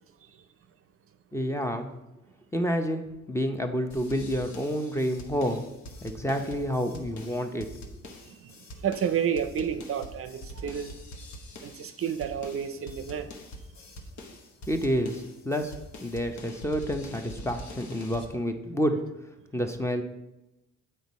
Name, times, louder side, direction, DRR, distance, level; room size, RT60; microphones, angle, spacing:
voice 1, 1.3-1.9 2.5-5.7 6.0-7.7 14.7-15.7 16.0-19.0 19.5-20.0, equal, 10° left, 6 dB, 0.6 m, -29 dB
sound 1, 3.9-18.3, equal, 70° left, 1.1 m, -44 dB
voice 2, 8.1-10.9 11.6-13.3, right 8 dB, 50° right, 10 dB, 0.5 m, -31 dB
8.0 x 4.3 x 4.1 m, 0.97 s
cardioid pair, 90°, 30 cm